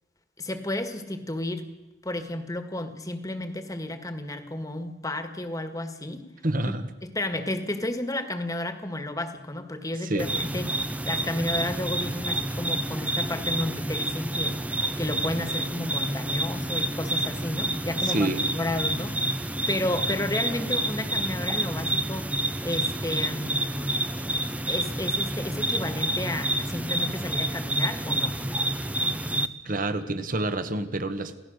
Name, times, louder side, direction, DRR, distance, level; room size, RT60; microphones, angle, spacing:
voice 1, 0.4-1.6 2.0-6.3 6.7-6.8 7.0-14.6 15.0-19.4 19.7-22.3 22.6-23.9 24.7-28.4, left 1 dB, 20° left, 8 dB, 1.8 m, -32 dB
voice 2, 6.4-6.9 10.0-10.3 18.0-18.5 29.6-31.4, right 2 dB, 45° right, 10 dB, 1.5 m, -28 dB
sound 1, 10.2-29.5, right 1 dB, 5° right, 0.8 m, -29 dB
28.5 x 16.5 x 6.6 m, 1.1 s
head